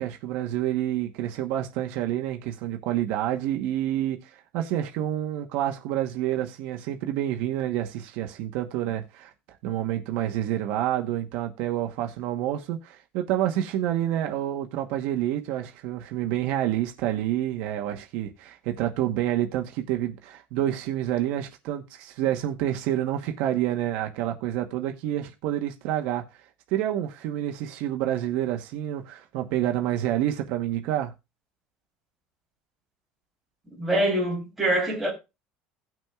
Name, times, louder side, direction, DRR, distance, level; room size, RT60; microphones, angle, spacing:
voice 1, 0.0-9.3 9.6-26.2 26.7-31.1, right 12 dB, 70° right, 1.1 m, -28 dB
voice 2, 33.8-35.1, right 1 dB, 5° right, 3.5 m, -24 dB
17.5 x 6.2 x 2.4 m
cardioid pair, 165°, 3 cm